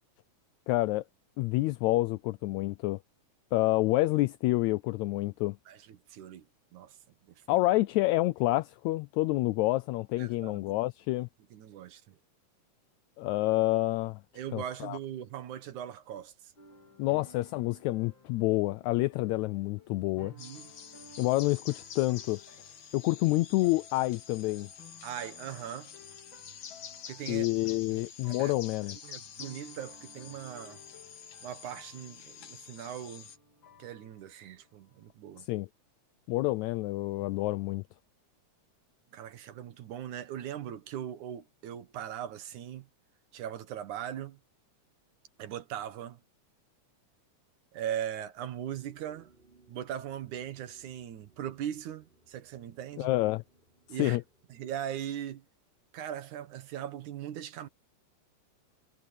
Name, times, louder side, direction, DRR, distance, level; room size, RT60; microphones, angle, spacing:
voice 1, 0.7-1.0 1.4-3.0 3.5-5.6 7.5-11.3 13.2-14.2 14.5-15.0 17.0-20.3 21.2-22.4 22.9-24.7 27.3-29.0 35.4-35.7 36.3-37.8 53.0-53.4 54.0-54.2, left 19 dB, 80° left, 1.8 m, -28 dB
voice 2, 5.7-6.5 6.7-7.0 7.4-7.6 10.2-10.6 11.5-12.2 14.3-16.5 17.1-17.2 20.2-20.7 25.0-25.9 27.1-27.5 28.0-28.5 29.0-30.8 31.4-33.3 33.8-35.5 39.1-42.9 43.3-44.4 45.4-46.2 47.7-49.3 49.7-53.1 53.9-54.2 54.5-55.4 55.9-57.7, right 10 dB, 80° right, 2.8 m, -40 dB
sound 1, 16.6-35.1, left 1 dB, 40° left, 4.8 m, -57 dB
sound 2, 20.4-33.4, left 8 dB, 65° left, 2.8 m, -48 dB
sound 3, 48.7-54.7, right 2 dB, 15° right, 5.5 m, -65 dB
omnidirectional pair, 3.4 m